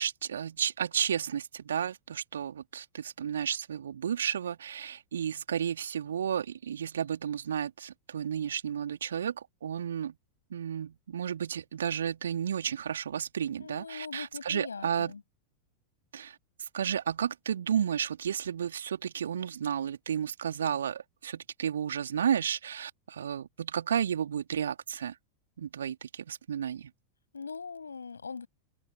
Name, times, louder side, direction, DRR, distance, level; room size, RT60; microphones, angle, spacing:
voice 1, 0.0-10.2 10.5-15.1 16.1-25.2 25.6-26.9, right 8 dB, 65° right, 3.6 m, -32 dB
voice 2, 13.6-15.2 27.3-28.5, left 5 dB, 75° left, 7.6 m, -41 dB
figure-of-eight pair, 90°, 0 cm